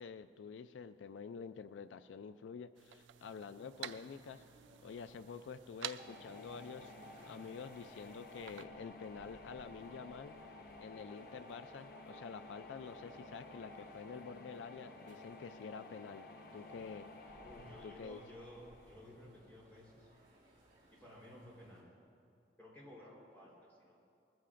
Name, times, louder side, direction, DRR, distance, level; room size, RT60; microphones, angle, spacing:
voice 1, 0.0-4.4 4.8-10.4 10.8-16.2 16.5-17.1 17.8-18.2, left 5 dB, 85° left, 12 dB, 0.4 m, -48 dB
sound 1, 2.8-8.7, right 11 dB, 85° right, 0.4 m, -51 dB
sound 2, 3.7-21.8, right 1 dB, 25° right, 3.6 m, -66 dB
sound 3, 6.0-19.8, left 2 dB, 55° left, 0.9 m, -54 dB
voice 2, 17.4-20.1 20.9-21.9 22.6-24.0, equal, 10° left, -5 dB, 3.8 m, -55 dB
20.5 x 14.0 x 2.5 m, 2.4 s
head